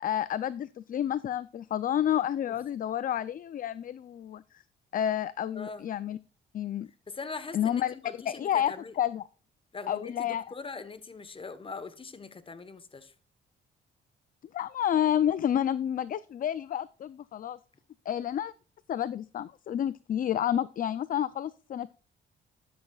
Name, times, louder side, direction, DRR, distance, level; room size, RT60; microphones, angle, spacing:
voice 1, 0.0-4.4 4.9-6.2 6.5-6.9 7.5-9.2 9.9-10.4 14.5-17.6 18.1-18.5 18.9-21.9, left 10 dB, 45° left, 0.4 m, -30 dB
voice 2, 5.5-5.9 7.1-8.9 9.7-13.1, left 4 dB, 25° left, 1.1 m, -41 dB
13.0 x 10.0 x 2.3 m
cardioid pair, 90°, 20 cm